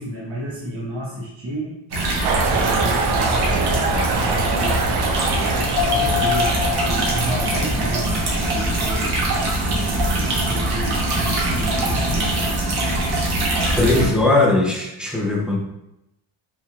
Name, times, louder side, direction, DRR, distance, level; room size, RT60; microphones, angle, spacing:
voice 1, 0.0-1.8 2.4-12.8, right 1 dB, 30° right, -6 dB, 1.0 m, -31 dB
sound 1, 1.9-14.1, right 1 dB, 50° right, 1.2 m, -22 dB
sound 2, 2.2-8.5, right 5 dB, 85° right, 0.7 m, -26 dB
sound 3, 5.8-9.5 9.8-9.9, left 12 dB, 60° left, 0.9 m, -28 dB
voice 2, 13.8-15.6, left 2 dB, ahead, -2 dB, 0.6 m, -19 dB
5.7 x 3.4 x 2.4 m, 0.87 s
cardioid pair, 170°, 48 cm